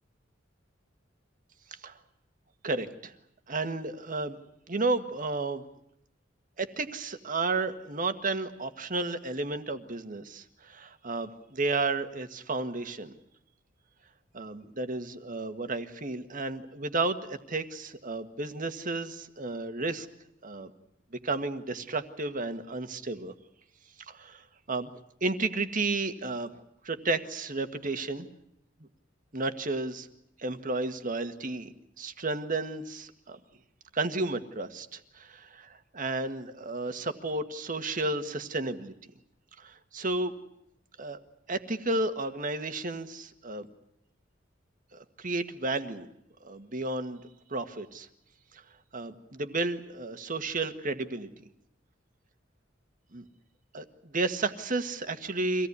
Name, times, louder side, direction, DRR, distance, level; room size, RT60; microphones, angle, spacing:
voice 1, 2.6-3.1 3.5-4.4 4.7-5.6 6.6-13.1 14.3-20.1 20.4-20.7 21.2-23.3 24.1-24.9 25.2-28.3 29.3-30.1 30.4-31.7 32.0-33.4 33.9-38.9 39.6-40.3 41.0-41.2 41.5-43.7 44.9-46.1 46.4-47.2 47.5-48.1 48.9-51.3 53.1-53.2 53.7-55.7, right 3 dB, 45° right, 9 dB, 1.7 m, -32 dB
25.0 x 17.5 x 9.7 m, 0.78 s
head